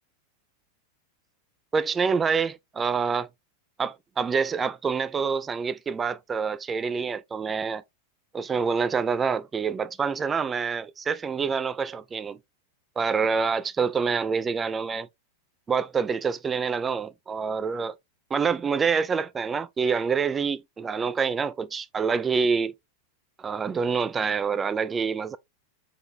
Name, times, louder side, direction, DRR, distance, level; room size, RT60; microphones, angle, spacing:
voice 1, 1.7-3.3 3.8-7.8 8.3-12.4 13.0-15.1 15.7-18.0 18.3-22.7 23.4-25.4, right 5 dB, 20° right, 0.3 m, -26 dB
3.5 x 3.4 x 2.7 m
figure-of-eight pair, 90°, 0 cm